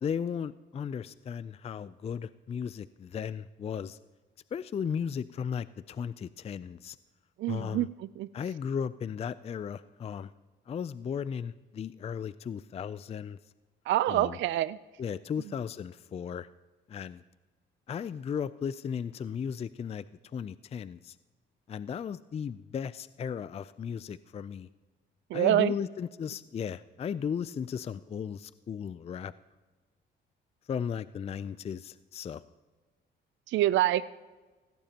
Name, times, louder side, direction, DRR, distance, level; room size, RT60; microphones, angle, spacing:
voice 1, 0.0-4.0 4.5-7.0 7.5-7.9 8.3-10.3 10.7-13.4 14.1-14.4 15.0-16.5 16.9-17.2 17.9-21.2 21.7-24.7 25.3-29.3 30.7-32.4, left 7 dB, 30° left, 16 dB, 0.4 m, -36 dB
voice 2, 7.4-8.3 13.9-14.8 25.3-25.7 33.5-34.0, right 14 dB, 70° right, 16 dB, 0.4 m, -26 dB
17.0 x 16.5 x 2.9 m, 1.3 s
cardioid pair, 90°, 20 cm